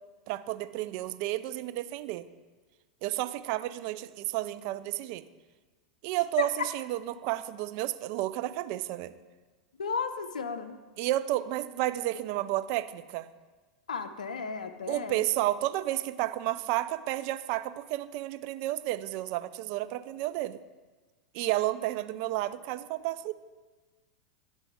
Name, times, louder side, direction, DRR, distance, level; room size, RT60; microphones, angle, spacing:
voice 1, 0.3-2.3 3.0-5.2 6.0-9.1 11.0-13.3 14.9-20.6 21.3-23.3, right 15 dB, 55° right, 13 dB, 0.3 m, -31 dB
voice 2, 9.8-10.8 13.9-15.2, left 4 dB, 85° left, 8 dB, 0.5 m, -33 dB
11.0 x 4.0 x 3.5 m, 1.3 s
hypercardioid pair, 95°, 4 cm